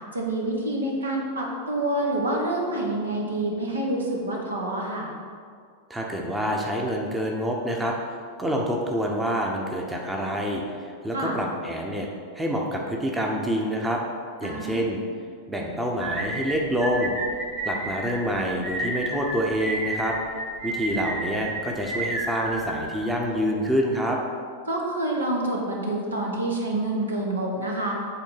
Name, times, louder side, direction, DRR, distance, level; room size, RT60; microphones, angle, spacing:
voice 1, 0.1-5.1 11.1-11.4 14.4-14.8 24.6-27.9, right 1 dB, 75° right, -1 dB, 1.3 m, -27 dB
voice 2, 5.9-7.9 8.4-12.1 12.3-14.0 14.4-15.0 15.5-17.1 17.7-20.2 20.6-24.2, equal, 10° right, 0 dB, 0.9 m, -27 dB
sound 1, 16.0-23.4, right 2 dB, 50° right, 1.6 m, -31 dB
8.1 x 3.6 x 5.7 m, 2.2 s
figure-of-eight pair, 90°, 0 cm